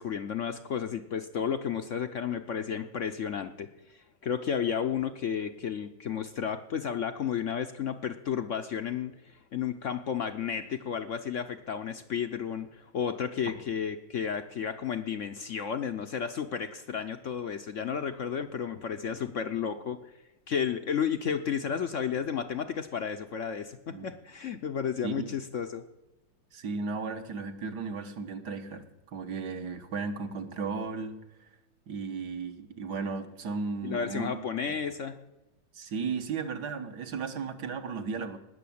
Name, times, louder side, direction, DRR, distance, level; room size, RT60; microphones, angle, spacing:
voice 1, 0.0-20.0 20.5-25.8 33.8-35.2, left 7 dB, 60° left, 9 dB, 0.8 m, -32 dB
voice 2, 26.5-31.5 31.9-34.4 34.7-34.8 35.7-38.4, right 4 dB, 60° right, 7 dB, 1.7 m, -35 dB
19.0 x 6.8 x 8.6 m, 1.0 s
omnidirectional pair, 2.0 m